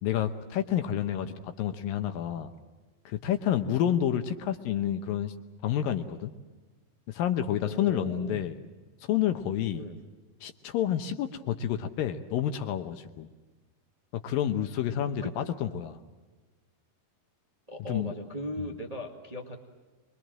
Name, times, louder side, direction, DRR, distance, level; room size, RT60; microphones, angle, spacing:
voice 1, 0.0-2.5 3.1-5.3 5.6-6.3 7.1-8.6 9.0-9.8 10.4-13.3 14.2-16.0 17.9-18.1 18.6-18.7, left 10 dB, 75° left, 7 dB, 2.6 m, -29 dB
voice 2, 7.6-8.4 9.7-10.0 15.2-15.3 17.7-19.6, equal, 45° right, 3 dB, 0.4 m, -38 dB
25.5 x 22.5 x 7.6 m, 1.3 s
omnidirectional pair, 4.3 m